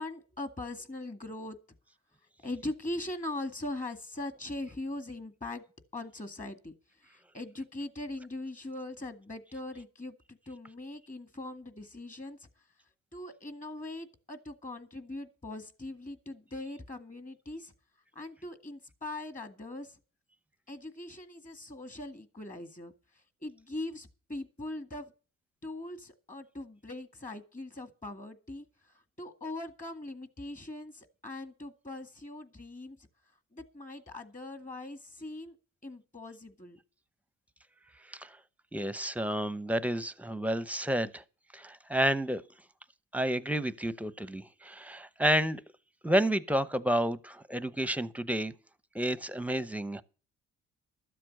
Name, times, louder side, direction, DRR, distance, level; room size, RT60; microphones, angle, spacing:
voice 1, 0.0-1.6 2.4-5.6 5.9-12.5 13.1-17.7 18.2-20.0 20.7-25.1 25.6-33.0 33.5-35.6 35.8-36.8, left 2 dB, 25° left, 1.9 m, -41 dB
voice 2, 38.7-41.2 41.5-42.4 43.1-45.6 46.0-48.5 48.9-50.0, right 1 dB, 5° right, 0.8 m, -30 dB
13.0 x 7.6 x 6.4 m
cardioid pair, 90°, 30 cm